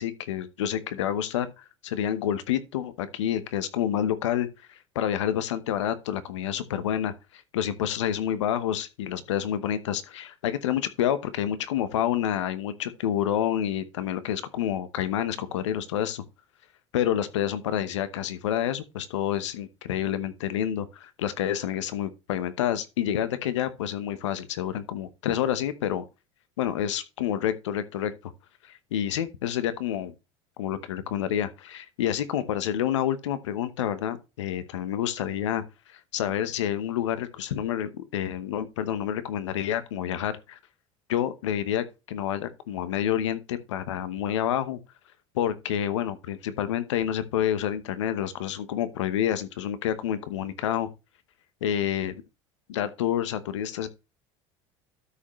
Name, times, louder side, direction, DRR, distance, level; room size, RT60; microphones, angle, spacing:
voice 1, 0.0-16.2 16.9-26.0 26.6-28.3 28.6-30.1 30.6-35.6 35.9-40.6 41.1-44.8 45.3-50.9 51.6-52.2 52.7-53.9, left 10 dB, 90° left, 1.0 m, -28 dB
12.5 x 5.1 x 3.1 m
hypercardioid pair, 90°, 15 cm